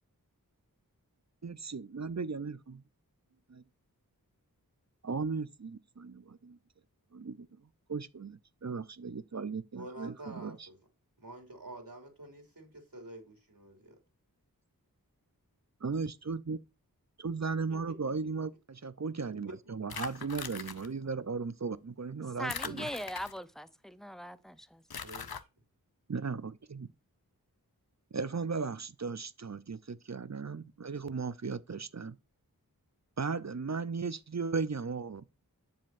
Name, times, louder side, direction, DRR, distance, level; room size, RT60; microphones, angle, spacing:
voice 1, 1.4-2.8 3.5-3.6 5.0-6.6 7.1-7.5 7.9-10.7 15.8-16.6 17.2-22.9 26.1-26.9 28.1-32.2 33.2-35.4, right 4 dB, 50° right, 0.6 m, -36 dB
voice 2, 9.7-10.8 11.2-14.0 17.7-17.8 18.0-18.1 25.0-25.5, right 1 dB, 70° right, 2.8 m, -48 dB
sound 1, 19.9-20.9 22.5-23.6 24.9-25.4, left 6 dB, 90° left, 0.7 m, -41 dB
voice 3, 22.4-24.8, equal, ahead, 0.7 m, -40 dB
7.5 x 7.4 x 2.6 m
wide cardioid pair, 40°, 36 cm